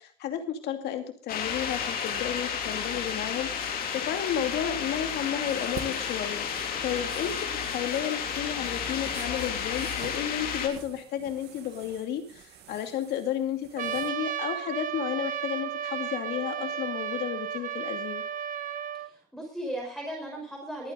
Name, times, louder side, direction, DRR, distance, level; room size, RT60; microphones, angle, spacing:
voice 1, 0.0-6.4 6.8-18.2, left 10 dB, 80° left, 6 dB, 2.5 m, -32 dB
sound 1, 1.3-10.7, left 7 dB, 60° left, 3.2 m, -32 dB
sound 2, 5.1-14.1, right 9 dB, 75° right, 2.2 m, -48 dB
Trumpet, 13.8-19.1, right 9 dB, 55° right, 1.1 m, -33 dB
voice 2, 18.9-20.9, right 1 dB, ahead, -1 dB, 5.5 m, -37 dB
22.0 x 9.2 x 3.9 m, 0.42 s
cardioid pair, 110°, 17 cm